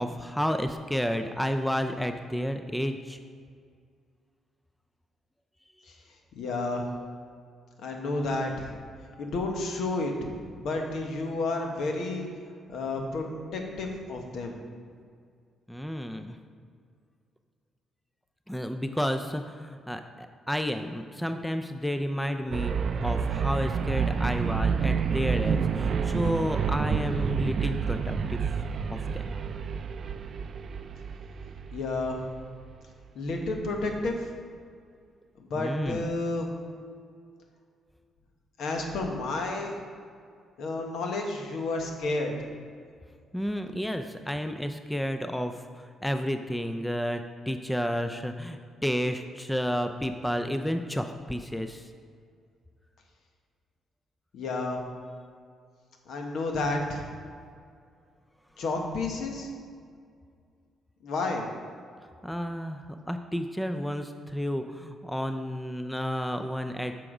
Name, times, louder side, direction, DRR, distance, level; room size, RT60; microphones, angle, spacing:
voice 1, 0.0-3.2 15.7-16.4 18.5-22.7 23.0-28.4 28.9-29.3 35.5-36.0 43.3-51.9 62.2-66.9, equal, 5° left, 7 dB, 0.4 m, -31 dB
voice 2, 6.3-6.8 7.8-8.7 9.2-10.1 10.6-12.3 12.7-13.2 13.5-14.6 31.7-32.2 33.1-34.3 35.4-36.5 38.6-39.8 40.6-42.3 54.3-54.8 56.1-57.1 58.6-59.5 61.0-61.5, left 2 dB, 75° left, 2 dB, 1.2 m, -31 dB
sound 1, 22.5-32.4, right 6 dB, 55° right, 0.4 m, -29 dB
7.5 x 6.0 x 4.9 m, 2.2 s
cardioid pair, 90°, 0 cm